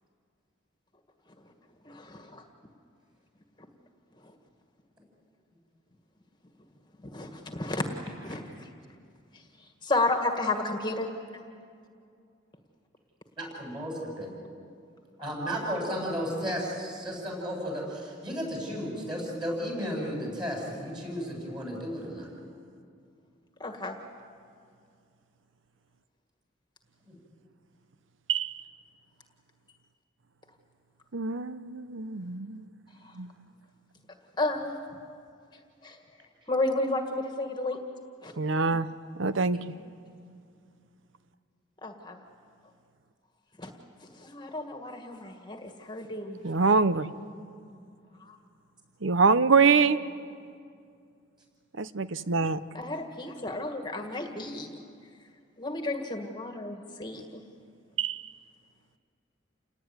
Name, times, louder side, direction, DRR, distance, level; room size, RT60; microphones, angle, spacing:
voice 1, 1.9-2.4 4.2-4.3 7.0-8.7 9.3-11.1 23.6-24.0 33.0-33.2 34.4-34.7 35.8-36.0 36.5-37.8 38.2-38.3 41.8-42.2 43.6-43.7 44.1-46.4 48.2-48.4 52.7-54.7 55.6-57.4, left 2 dB, 20° left, 4 dB, 1.8 m, -32 dB
voice 2, 13.4-14.3 15.2-22.3 27.1-27.2, equal, 25° right, -1 dB, 7.9 m, -34 dB
voice 3, 28.3-28.6 31.1-32.8 33.2-33.3 38.4-38.9 39.2-39.6 46.4-47.1 49.0-50.0 51.8-52.6 58.0-58.3, right 4 dB, 75° right, 13 dB, 0.9 m, -25 dB
29.0 x 19.5 x 9.7 m, 2.4 s
head